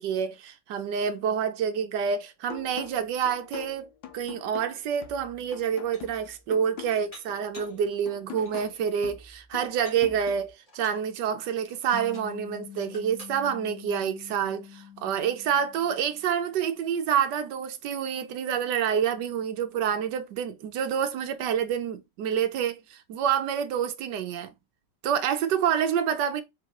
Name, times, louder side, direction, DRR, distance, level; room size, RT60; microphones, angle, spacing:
voice 1, 0.0-24.5 25.0-26.4, right 8 dB, 75° right, 1.3 m, -28 dB
sound 1, 2.5-10.5, left 9 dB, 90° left, 1.4 m, -44 dB
Dishes pots and pans, 5.0-5.1 5.6-6.2 7.1-7.8 8.3-8.8 9.6-11.1 11.7-12.4 12.7-13.4, left 1 dB, 30° left, 1.6 m, -51 dB
sound 2, 11.9-16.6, left 9 dB, 65° left, 1.0 m, -46 dB
3.8 x 3.8 x 2.9 m
omnidirectional pair, 1.9 m